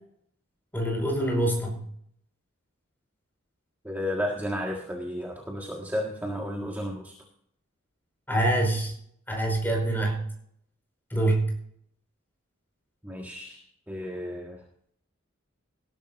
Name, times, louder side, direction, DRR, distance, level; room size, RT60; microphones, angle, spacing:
voice 1, 0.7-1.8 8.3-8.9 9.3-10.2 11.1-11.5, right 1 dB, 10° left, 0 dB, 5.0 m, -25 dB
voice 2, 3.8-7.1 13.0-14.6, equal, 10° right, -1 dB, 1.6 m, -33 dB
19.0 x 12.0 x 2.6 m, 0.67 s
head